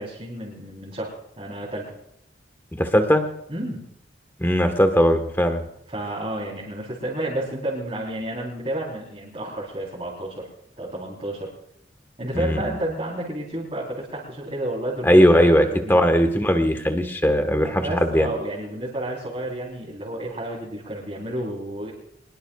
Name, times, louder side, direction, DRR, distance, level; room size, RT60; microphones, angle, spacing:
voice 1, 0.0-1.9 3.5-3.8 5.9-10.5 10.8-11.5 12.2-16.1 17.6-21.9, right 1 dB, 30° right, -6 dB, 3.8 m, -31 dB
voice 2, 2.7-3.2 4.4-5.7 12.3-12.6 15.0-18.3, equal, 10° left, 6 dB, 1.3 m, -19 dB
22.5 x 21.0 x 2.4 m, 0.77 s
head